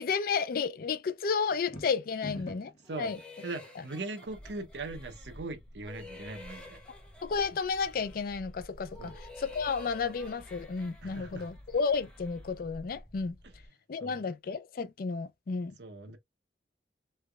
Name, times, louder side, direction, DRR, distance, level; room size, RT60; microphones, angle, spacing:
voice 1, 0.0-2.7 3.0-3.2 7.2-13.4 13.9-15.7, left 5 dB, 55° left, 0.4 m, -32 dB
sound 1, 1.5-2.8, left 1 dB, 30° left, 1.4 m, -42 dB
sound 2, 2.8-5.5 5.8-8.4 8.8-12.6, left 3 dB, 5° left, 1.0 m, -52 dB
voice 2, 3.4-6.8 9.0-9.2 11.0-11.5 14.0-14.2 15.8-16.2, right 3 dB, 75° right, 0.8 m, -40 dB
sound 3, 4.2-13.7, equal, 15° right, 1.4 m, -52 dB
3.3 x 3.2 x 2.3 m
head